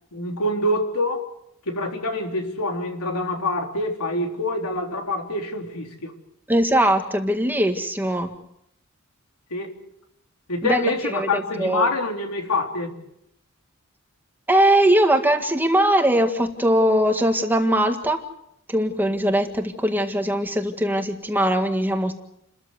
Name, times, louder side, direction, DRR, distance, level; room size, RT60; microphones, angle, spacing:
voice 1, 0.1-1.3 1.7-6.1 9.5-9.8 10.5-13.0, left 2 dB, 90° left, 3.7 m, -26 dB
voice 2, 6.5-8.3 10.6-11.9 14.5-18.2 18.7-22.1, right 1 dB, 10° right, 1.8 m, -21 dB
29.5 x 14.0 x 8.1 m
head